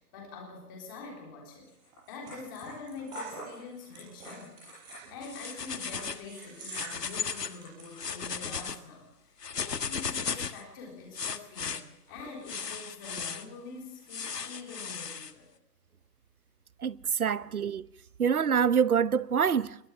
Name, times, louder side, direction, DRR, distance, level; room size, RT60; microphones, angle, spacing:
voice 1, 0.1-1.7 2.1-4.5 5.1-9.3 9.6-15.5 17.4-17.5, left 4 dB, 15° left, 3.6 m, -45 dB
sound 1, 1.7-7.8, right 1 dB, 10° right, 6.7 m, -45 dB
sound 2, 5.2-6.2 6.6-7.6 7.9-8.8 9.4-10.6 11.1-11.8 12.5-13.4 14.1-15.3, left 6 dB, 75° left, 1.7 m, -36 dB
voice 2, 16.8-17.9 18.2-19.9, right 7 dB, 60° right, 0.9 m, -26 dB
22.0 x 18.5 x 7.2 m
hypercardioid pair, 175°, 48 cm